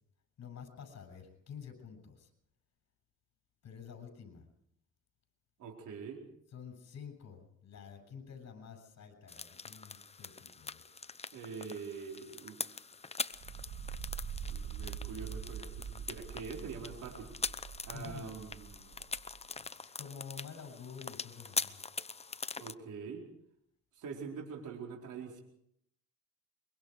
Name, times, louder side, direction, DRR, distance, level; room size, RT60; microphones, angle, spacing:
voice 1, 0.4-2.3 3.6-4.5 6.5-10.9 17.9-18.4 19.6-21.8, left 7 dB, 60° left, 7 dB, 7.1 m, -49 dB
voice 2, 5.6-6.2 11.3-12.8 14.4-17.3 17.8-19.0 22.6-23.2 23.9-25.4, right 5 dB, 75° right, 0 dB, 4.5 m, -44 dB
sound 1, 9.3-22.7, left 4 dB, 20° left, 0.8 m, -43 dB
sound 2, 13.3-19.4, right 7 dB, 50° right, 2.0 m, -44 dB
24.0 x 23.5 x 4.9 m, 0.74 s
cardioid pair, 90°, 30 cm